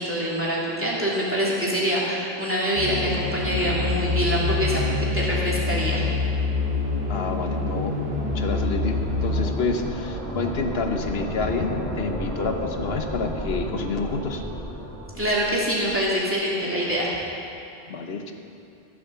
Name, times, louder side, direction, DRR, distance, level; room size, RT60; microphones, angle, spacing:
voice 1, 0.0-6.0 15.2-17.1, equal, 10° right, -6 dB, 2.7 m, -25 dB
sound 1, 2.7-9.5, left 3 dB, 55° right, 2.3 m, -26 dB
voice 2, 7.1-14.4 17.9-18.3, left 4 dB, 75° left, 5 dB, 1.2 m, -29 dB
sound 2, 7.3-16.1, equal, 5° left, 1.9 m, -33 dB
14.5 x 7.5 x 6.8 m, 2.6 s
omnidirectional pair, 1.1 m